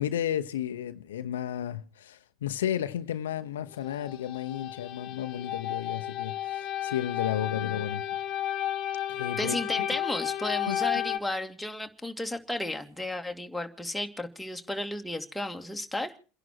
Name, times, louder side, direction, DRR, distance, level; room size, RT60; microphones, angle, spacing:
voice 1, 0.0-8.0 9.1-9.9 10.7-10.8, left 10 dB, 80° left, 0.9 m, -33 dB
sound 1, 3.7-11.2, left 11 dB, 55° left, 1.4 m, -33 dB
voice 2, 9.4-16.2, left 1 dB, 5° left, 2.5 m, -33 dB
29.0 x 11.0 x 4.5 m
hypercardioid pair, 75°, 0 cm